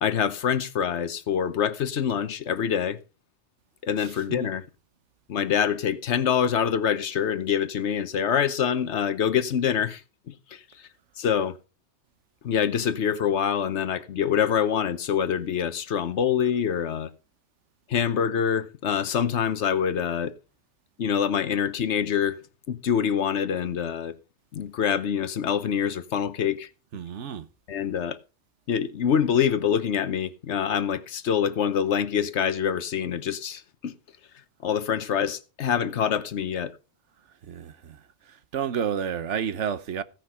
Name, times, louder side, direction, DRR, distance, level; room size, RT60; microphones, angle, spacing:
voice 1, 0.0-3.0 3.8-4.7 5.3-10.0 10.3-10.6 11.2-11.6 12.4-17.1 17.9-20.3 21.0-22.4 22.7-24.1 24.5-26.7 27.7-28.2 28.7-33.9 34.6-36.7, left 8 dB, 75° left, 1.2 m, -25 dB
voice 2, 4.0-4.5 26.9-27.5 37.4-38.0 38.3-40.0, right 8 dB, 80° right, 1.2 m, -31 dB
16.5 x 5.9 x 5.6 m
omnidirectional pair, 1.2 m